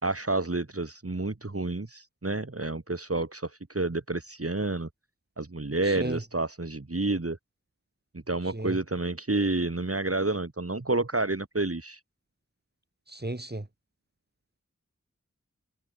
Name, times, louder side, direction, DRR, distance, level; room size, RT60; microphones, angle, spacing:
voice 1, 0.0-4.9 5.4-7.4 8.3-12.0, right 2 dB, 50° right, 2.6 m, -29 dB
voice 2, 5.9-6.2 8.5-8.8 13.1-13.7, right 1 dB, 35° right, 3.7 m, -34 dB
wide cardioid pair, 45°, 30 cm